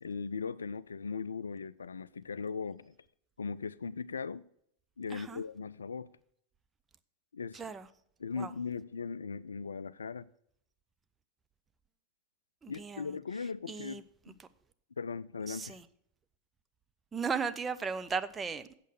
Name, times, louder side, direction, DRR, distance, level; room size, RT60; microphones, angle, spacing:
voice 1, 0.0-2.9 3.4-4.4 5.0-6.1 7.3-7.6 8.2-10.3 12.7-14.0 14.3-14.4 15.0-15.8, left 5 dB, 70° left, 0.3 m, -38 dB
voice 2, 5.1-5.4 7.5-7.9 8.4-8.5 12.6-14.5 15.5-15.9 17.1-18.8, right 5 dB, 15° right, 0.6 m, -37 dB
8.3 x 7.5 x 6.4 m
figure-of-eight pair, 90°, 0 cm